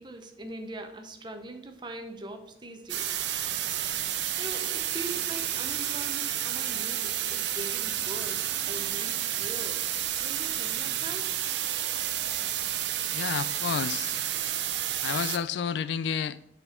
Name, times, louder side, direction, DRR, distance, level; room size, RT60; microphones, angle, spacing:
voice 1, 0.0-3.2 4.4-9.9 10.2-11.3 12.5-12.7, right 1 dB, 25° right, 0.7 m, -42 dB
sound 1, 2.9-15.4, right 11 dB, 75° right, 0.5 m, -30 dB
voice 2, 13.1-14.2 15.0-16.4, left 7 dB, 75° left, 0.3 m, -30 dB
6.7 x 4.3 x 4.2 m
head